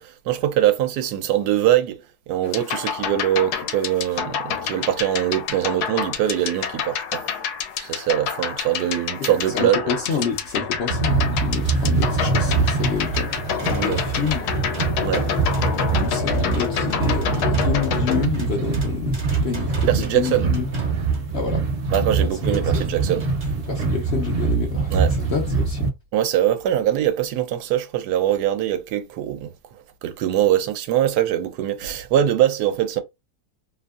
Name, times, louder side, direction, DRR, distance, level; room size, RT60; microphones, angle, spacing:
voice 1, 0.0-7.4 7.8-9.9 13.7-14.0 15.0-15.3 19.9-20.5 21.9-23.3 24.9-25.1 26.1-29.5 30.0-33.0, right 11 dB, 90° right, 1.1 m, -22 dB
sound 1, 2.4-18.3, left 8 dB, 80° left, 1.1 m, -28 dB
voice 2, 9.2-13.3 13.6-14.5 16.0-20.7 21.3-21.6 22.2-22.8 23.7-25.9, left 5 dB, 60° left, 0.7 m, -28 dB
sound 2, 10.9-25.9, right 4 dB, 55° right, 0.9 m, -24 dB
sound 3, 11.6-24.0 25.1-25.2 25.6-25.7, right 3 dB, 30° right, 0.6 m, -42 dB
2.8 x 2.5 x 2.3 m
omnidirectional pair, 1.7 m